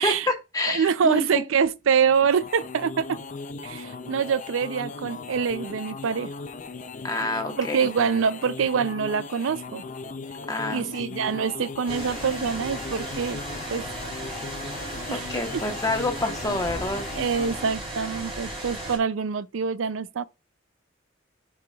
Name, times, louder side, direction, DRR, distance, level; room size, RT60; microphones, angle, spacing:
voice 1, 0.0-1.4 7.0-7.9 10.5-10.9 15.1-17.1, left 2 dB, 20° left, 1.1 m, -28 dB
voice 2, 0.7-3.2 3.6-6.3 7.6-9.8 10.7-13.4 13.7-13.8 15.1-15.3 17.1-20.2, right 6 dB, 85° right, 0.4 m, -25 dB
sound 1, 1.9-17.8, left 4 dB, 40° left, 0.5 m, -38 dB
sound 2, 11.9-19.0, right 1 dB, 30° right, 3.6 m, -35 dB
10.5 x 4.8 x 2.3 m
head